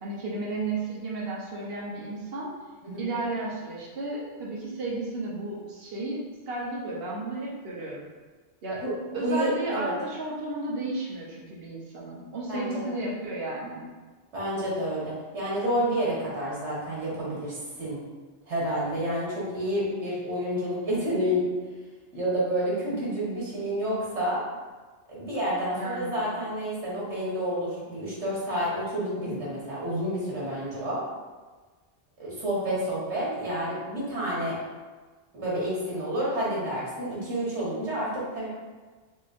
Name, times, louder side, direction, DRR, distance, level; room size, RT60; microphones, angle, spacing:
voice 1, 0.0-2.5 3.0-8.0 8.6-8.8 9.1-13.8 25.7-26.3, right 2 dB, 65° right, -4 dB, 1.0 m, -33 dB
voice 2, 9.2-9.9 12.5-12.8 14.3-18.0 18.5-21.5 22.1-24.4 25.1-31.0 32.2-34.6 35.3-38.5, equal, 90° right, -7 dB, 1.7 m, -29 dB
4.2 x 2.9 x 2.5 m, 1.3 s
omnidirectional pair, 1.1 m